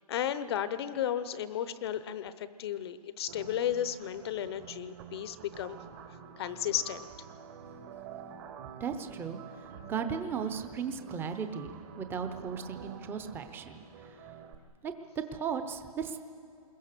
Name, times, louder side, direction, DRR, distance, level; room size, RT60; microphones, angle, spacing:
voice 1, 0.0-5.8 6.4-7.1, left 10 dB, 40° left, 14 dB, 0.7 m, -34 dB
sound 1, 3.3-14.5, right 7 dB, 35° right, 1.4 m, -48 dB
voice 2, 8.8-9.4 9.9-13.8 14.8-14.9 15.3-16.2, right 6 dB, 10° right, 8 dB, 0.8 m, -36 dB
28.0 x 21.5 x 6.7 m, 2.8 s
hypercardioid pair, 155°, 21 cm